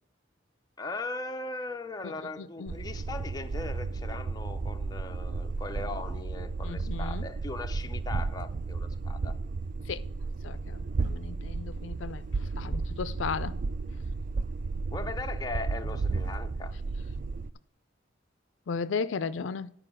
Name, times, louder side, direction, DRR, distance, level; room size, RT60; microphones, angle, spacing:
voice 1, 0.8-9.3 14.9-16.7, left 3 dB, 20° left, 0.6 m, -39 dB
voice 2, 2.0-2.7 6.6-7.3 9.9-10.0 10.4-13.6 18.7-19.7, left 5 dB, 75° left, 0.4 m, -35 dB
sound 1, 2.7-17.5, right 3 dB, 40° right, 0.3 m, -33 dB
9.9 x 4.9 x 6.1 m
head